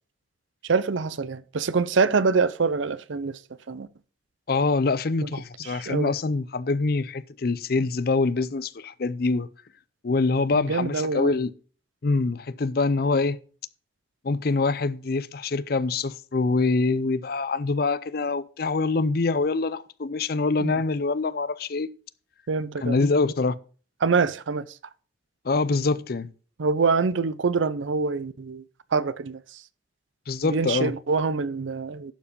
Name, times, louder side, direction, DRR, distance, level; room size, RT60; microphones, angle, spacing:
voice 1, 0.6-3.4 3.7-3.9 5.2-5.3 5.6-6.1 10.5-11.3 20.6-20.7 22.5-23.0 24.0-24.7 26.6-28.6 28.9-29.4 30.4-32.1, right 4 dB, 85° right, 0.6 m, -25 dB
voice 2, 4.5-9.5 10.0-11.5 12.0-13.4 14.2-21.9 22.8-23.6 25.4-26.3 30.3-30.9, left 3 dB, 50° left, 0.5 m, -25 dB
11.5 x 4.9 x 5.2 m
head